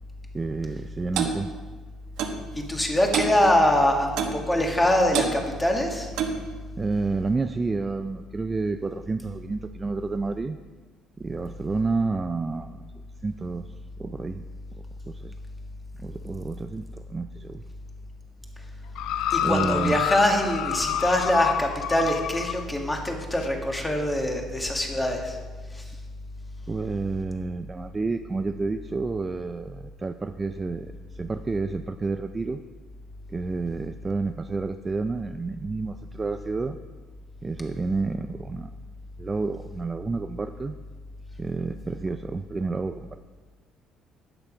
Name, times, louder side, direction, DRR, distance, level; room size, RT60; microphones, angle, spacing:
voice 1, 0.3-1.5 6.8-10.6 11.2-12.9 13.2-13.7 14.0-14.5 15.1-15.4 16.0-17.6 19.4-20.0 26.7-32.6 33.3-36.8 37.4-38.7 39.2-40.8 41.4-43.2, right 3 dB, 20° right, 8 dB, 0.3 m, -30 dB
Clock, 1.2-1.4 2.2-2.4 3.1-3.4 4.2-4.4 5.1-5.3 6.2-6.4, right 7 dB, 80° right, 1.3 m, -26 dB
voice 2, 2.5-6.1 19.3-25.4 25.7-25.9, left 1 dB, 10° left, 2 dB, 1.6 m, -24 dB
sound 1, 19.0-22.6 23.4-23.5, left 10 dB, 75° left, 0.6 m, -28 dB
12.5 x 8.9 x 5.0 m, 1.4 s
cardioid pair, 150°, 0 cm